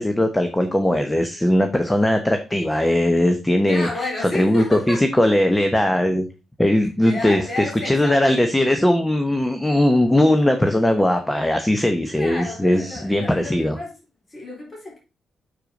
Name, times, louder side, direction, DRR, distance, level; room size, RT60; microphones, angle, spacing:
voice 1, 0.0-3.9 4.2-6.3 6.6-13.8, left 1 dB, 10° left, 1.0 m, -19 dB
voice 2, 3.7-5.0 7.0-8.7 12.2-13.9 14.3-15.0, left 2 dB, 30° left, 3.9 m, -32 dB
6.7 x 4.6 x 5.1 m
supercardioid pair, 60°, 0 cm